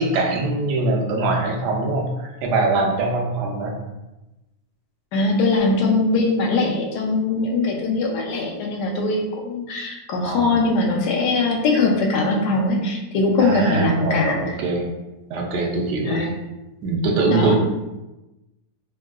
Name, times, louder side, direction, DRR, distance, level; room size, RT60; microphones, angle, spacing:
voice 1, 0.0-3.7 10.2-10.5 13.4-14.9 15.3-16.2 16.8-17.5, right 3 dB, 90° right, 0 dB, 1.2 m, -22 dB
voice 2, 5.1-14.5 16.0-16.3 17.3-17.5, left 3 dB, 90° left, 0 dB, 1.2 m, -21 dB
3.6 x 2.2 x 2.4 m, 1.0 s
omnidirectional pair, 1.7 m